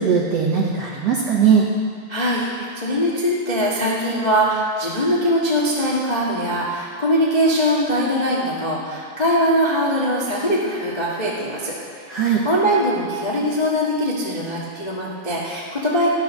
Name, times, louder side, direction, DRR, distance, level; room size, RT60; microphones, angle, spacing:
voice 1, 0.0-1.6 12.1-12.4, right 6 dB, 75° right, -2 dB, 1.4 m, -19 dB
voice 2, 2.1-11.7 12.0-16.1, equal, 75° left, -5 dB, 0.4 m, -21 dB
14.0 x 9.7 x 6.3 m, 2.1 s
omnidirectional pair, 4.2 m